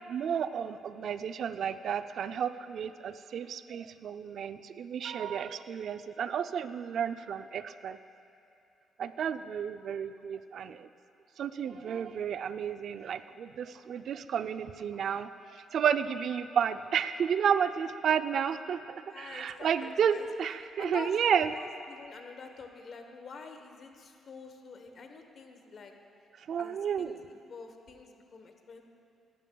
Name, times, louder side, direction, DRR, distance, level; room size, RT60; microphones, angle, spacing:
voice 1, 0.1-8.0 9.0-10.9 11.4-21.5 26.5-27.2, right 8 dB, 65° right, 11 dB, 0.4 m, -32 dB
voice 2, 19.1-20.3 20.8-21.2 21.5-25.9 26.6-28.8, left 5 dB, 55° left, 5 dB, 1.0 m, -47 dB
17.5 x 12.0 x 2.3 m, 2.5 s
cardioid pair, 90°, 0 cm